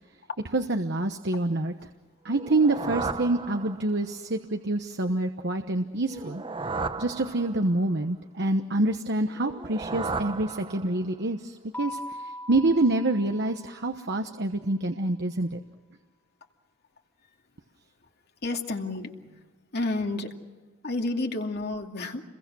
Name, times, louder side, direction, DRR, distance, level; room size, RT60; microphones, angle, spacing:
voice 1, 0.5-1.7 2.2-6.4 7.0-11.4 11.8-12.0 12.5-15.6, right 2 dB, 60° right, 6 dB, 1.2 m, -26 dB
sound 1, 2.3-4.1 6.1-7.9 9.4-11.2, right 3 dB, 25° right, 0.9 m, -35 dB
Keyboard (musical), 11.7-14.3, left 1 dB, 10° left, 2.6 m, -41 dB
voice 2, 18.4-19.4 19.7-20.3 20.8-22.2, left 2 dB, 55° left, 3 dB, 2.4 m, -30 dB
29.0 x 22.5 x 6.3 m, 1.3 s
head